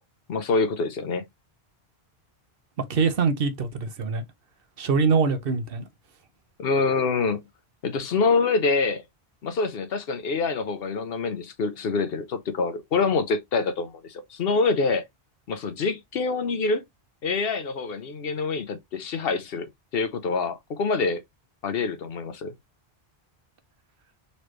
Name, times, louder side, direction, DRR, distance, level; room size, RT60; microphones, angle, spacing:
voice 1, 0.3-1.3 6.6-7.4 7.8-9.0 9.4-15.0 15.5-16.8 17.2-21.2 21.6-22.5, left 4 dB, 70° left, 1.0 m, -26 dB
voice 2, 2.9-4.2 4.8-5.9, right 5 dB, 65° right, 1.0 m, -23 dB
4.2 x 3.2 x 3.0 m
omnidirectional pair, 1.0 m